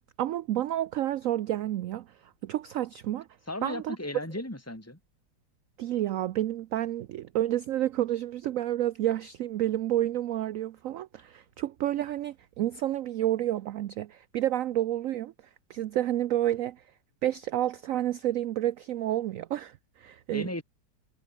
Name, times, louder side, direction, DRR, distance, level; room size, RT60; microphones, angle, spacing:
voice 1, 0.2-2.1 2.4-3.3 3.6-4.0 5.8-15.3 15.7-16.8 17.2-20.6, right 13 dB, 70° right, 0.8 m, -30 dB
voice 2, 3.5-5.0 20.3-20.6, left 1 dB, 5° left, 4.3 m, -35 dB
omnidirectional pair, 2.0 m